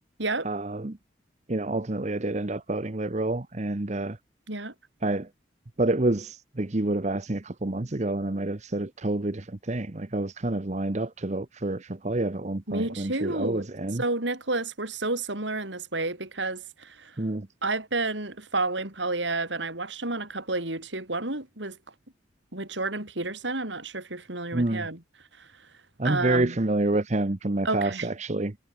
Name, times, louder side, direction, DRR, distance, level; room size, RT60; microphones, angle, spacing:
voice 1, 0.4-1.0 1.5-4.2 5.0-5.3 5.8-14.0 17.2-17.5 24.5-24.9 26.0-28.6, right 2 dB, 40° right, 0.9 m, -28 dB
voice 2, 12.7-13.6 14.0-17.2 17.6-21.8 22.5-25.0 25.4-25.5 26.0-26.6 27.6-28.1, right 2 dB, 75° right, 5.2 m, -30 dB
head